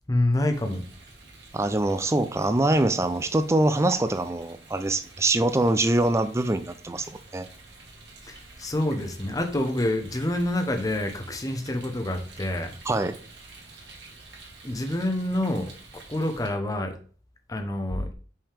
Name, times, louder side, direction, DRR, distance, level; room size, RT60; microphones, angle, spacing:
voice 1, 0.1-0.8 8.3-12.7 14.6-16.9 17.5-18.1, left 1 dB, 20° left, 6 dB, 0.8 m, -27 dB
Rain, 0.5-16.5, right 3 dB, 75° right, 1.7 m, -48 dB
voice 2, 1.5-7.5 12.9-13.1, right 2 dB, 15° right, 10 dB, 0.4 m, -24 dB
5.6 x 5.3 x 3.4 m, 0.42 s
head